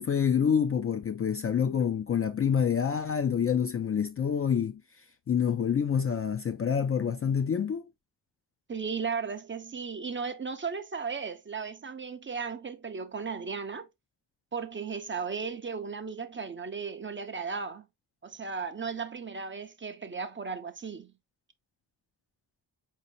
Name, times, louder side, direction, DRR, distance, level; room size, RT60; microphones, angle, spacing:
voice 1, 0.0-4.8 5.3-7.9, left 7 dB, 35° left, 0.4 m, -27 dB
voice 2, 8.7-13.9 14.5-17.9 18.2-21.1, right 5 dB, 25° right, 0.5 m, -35 dB
4.1 x 2.8 x 2.7 m
supercardioid pair, 50°, 45 cm